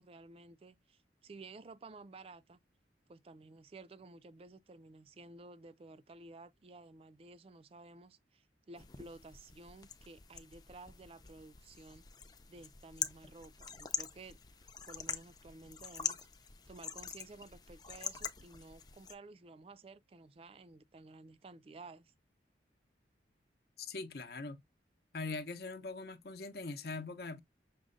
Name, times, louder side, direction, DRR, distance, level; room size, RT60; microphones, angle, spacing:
voice 1, 0.0-2.6 3.1-12.0 12.5-14.4 14.8-16.3 16.7-22.1, right 3 dB, 30° right, 0.3 m, -54 dB
sound 1, 8.8-19.1, left 6 dB, 20° left, 0.5 m, -44 dB
voice 2, 23.8-24.6 25.1-27.4, left 3 dB, 60° left, 0.7 m, -42 dB
6.1 x 2.1 x 3.8 m
head